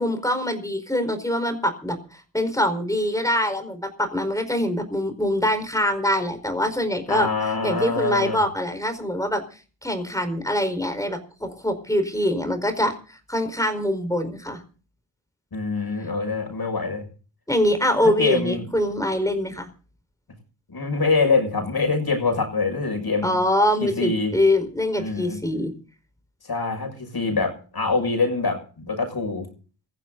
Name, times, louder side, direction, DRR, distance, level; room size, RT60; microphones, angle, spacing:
voice 1, 0.0-7.3 7.6-9.4 9.8-12.9 13.3-14.6 17.5-19.7 23.2-25.7, left 1 dB, 5° left, 8 dB, 4.8 m, -24 dB
voice 2, 7.1-8.4 15.5-17.0 18.0-18.7 20.7-23.4 23.8-24.3 25.0-25.4 26.4-29.5, left 4 dB, 55° left, 5 dB, 6.8 m, -24 dB
20.0 x 15.0 x 4.0 m, 0.38 s
cardioid pair, 70°, 45 cm